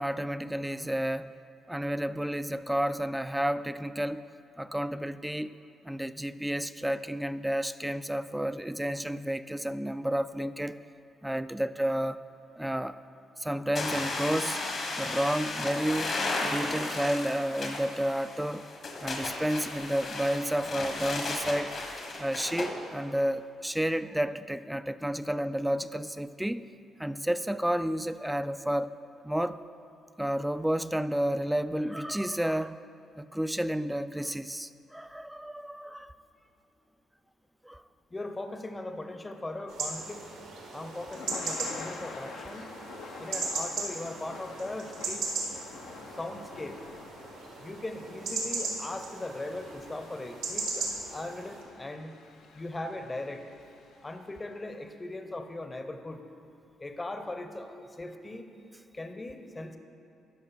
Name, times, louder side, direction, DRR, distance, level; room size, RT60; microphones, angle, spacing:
voice 1, 0.0-1.4 1.7-4.2 4.6-5.6 5.8-10.8 11.2-12.2 12.6-12.9 13.4-14.6 15.0-16.2 16.4-18.7 19.0-21.7 22.2-26.6 27.0-28.9 29.2-29.6 30.2-32.8 33.2-36.1 37.6-37.8, equal, 5° right, 13 dB, 0.3 m, -31 dB
sound 1, 13.8-22.7, left 2 dB, 60° left, 1.4 m, -34 dB
voice 2, 38.1-40.2 40.7-42.9 43.2-45.3 46.1-46.9 47.6-52.2 52.5-53.5 54.0-56.2 56.8-59.8, left 2 dB, 25° left, 7 dB, 0.7 m, -39 dB
sound 2, 39.7-51.6, right 3 dB, 85° right, 1.5 m, -37 dB
Thunder / Rain, 40.2-54.4, left 4 dB, 75° left, 0.6 m, -48 dB
12.5 x 5.1 x 4.2 m, 2.7 s
supercardioid pair, 55°, 0 cm